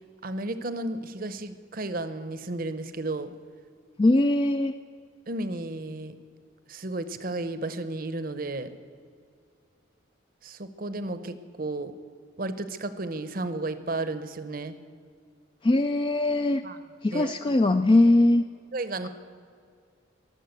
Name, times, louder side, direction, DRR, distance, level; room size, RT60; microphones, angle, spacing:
voice 1, 0.2-3.3 5.3-6.2 6.7-8.8 10.4-11.9 12.4-14.8 16.6-16.8 17.1-17.3 18.7-19.1, right 2 dB, 45° right, 12 dB, 0.8 m, -33 dB
voice 2, 4.0-4.7 15.6-16.6 17.0-18.4, left 2 dB, 25° left, 7 dB, 0.3 m, -21 dB
22.5 x 7.4 x 8.0 m, 2.3 s
head